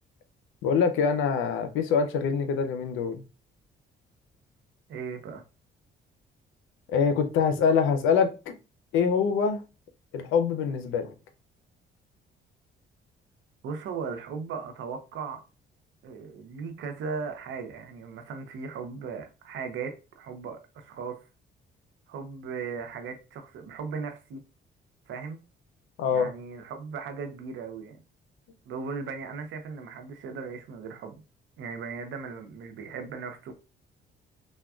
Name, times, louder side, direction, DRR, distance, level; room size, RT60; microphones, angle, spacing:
voice 1, 0.6-3.2 6.9-8.5 8.9-9.6 10.1-11.1 26.0-26.3, left 6 dB, 90° left, 0.5 m, -24 dB
voice 2, 4.9-5.4 13.6-15.4 16.0-21.2 22.1-24.4 25.1-25.4 26.1-28.0 28.7-31.2 31.6-33.5, right 5 dB, 75° right, 0.7 m, -37 dB
3.5 x 2.2 x 2.3 m
cardioid pair, 90°, 20 cm